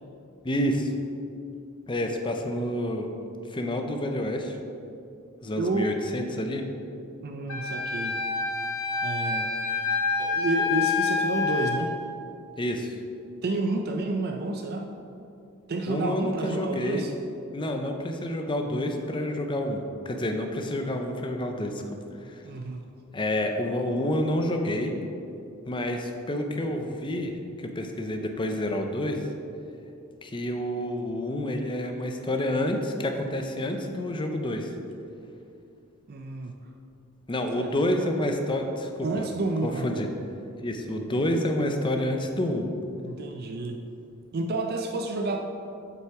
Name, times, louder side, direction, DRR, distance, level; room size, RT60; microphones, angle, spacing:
voice 1, 0.4-0.9 1.9-3.1 3.5-4.6 5.4-6.6 12.6-12.9 15.9-17.1 17.5-21.8 22.3-22.4 23.1-25.0 25.7-27.3 27.6-29.3 30.2-34.7 37.3-39.3 39.6-40.1 40.6-42.7, left 1 dB, 25° left, 4 dB, 0.6 m, -28 dB
voice 2, 5.6-6.0 7.2-8.2 9.0-9.5 10.2-12.0 13.4-14.9 15.7-17.1 22.4-22.8 36.1-36.5 37.6-37.7 39.0-39.9 43.0-43.8 44.3-45.4, right 2 dB, 45° right, 4 dB, 0.5 m, -30 dB
Wind instrument woodwind instrument, 7.5-11.8, left 4 dB, 90° left, 1.2 m, -27 dB
7.9 x 5.7 x 4.7 m, 2.6 s
head